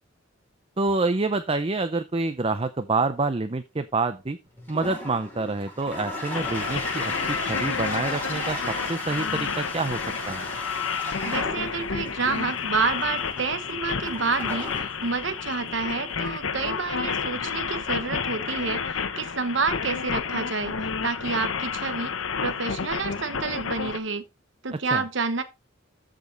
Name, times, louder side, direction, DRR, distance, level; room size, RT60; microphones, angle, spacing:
voice 1, 0.8-4.4 4.7-10.5 24.9-25.0, right 3 dB, 30° right, 0.5 m, -27 dB
Toilet flush, 4.5-17.7, left 1 dB, 10° left, 5.5 m, -36 dB
sound 1, 6.3-24.0, left 6 dB, 85° left, 1.0 m, -30 dB
voice 2, 11.2-22.1 22.4-24.2 24.6-25.4, right 4 dB, 65° right, 1.1 m, -29 dB
14.0 x 5.2 x 3.9 m
head